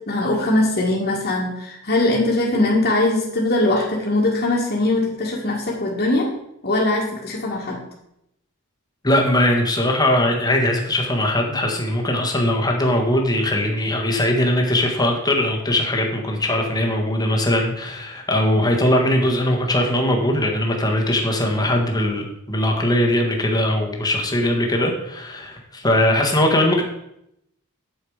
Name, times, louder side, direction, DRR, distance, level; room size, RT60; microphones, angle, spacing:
voice 1, 0.1-6.3 6.6-7.8, left 2 dB, 45° left, -6 dB, 1.8 m, -21 dB
voice 2, 9.0-26.8, left 1 dB, 20° left, 1 dB, 1.6 m, -20 dB
8.3 x 7.2 x 4.9 m, 0.80 s
head